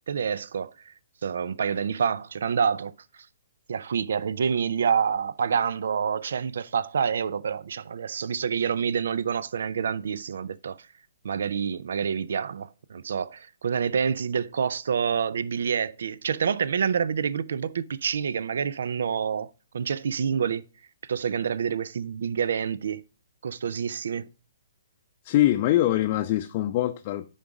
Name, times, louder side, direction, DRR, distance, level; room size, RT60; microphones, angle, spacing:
voice 1, 0.1-0.9 1.2-2.9 3.7-10.9 11.2-19.5 19.7-20.6 21.1-23.0 23.4-24.3, right 7 dB, 65° right, 0.4 m, -27 dB
voice 2, 25.2-27.2, left 14 dB, 40° left, 0.5 m, -23 dB
10.0 x 3.9 x 4.8 m
figure-of-eight pair, 130°, 0 cm